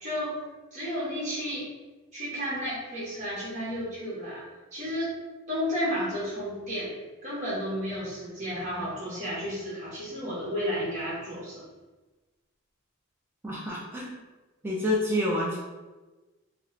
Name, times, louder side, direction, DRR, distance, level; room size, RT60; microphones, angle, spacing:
voice 1, 0.0-0.4 0.7-1.7 2.1-4.4 4.7-5.1 5.5-6.9 7.2-11.6, equal, 35° right, -7 dB, 1.1 m, -32 dB
voice 2, 13.4-14.1 14.6-15.6, left 1 dB, 10° right, -5 dB, 0.4 m, -28 dB
2.4 x 2.4 x 3.1 m, 1.2 s
head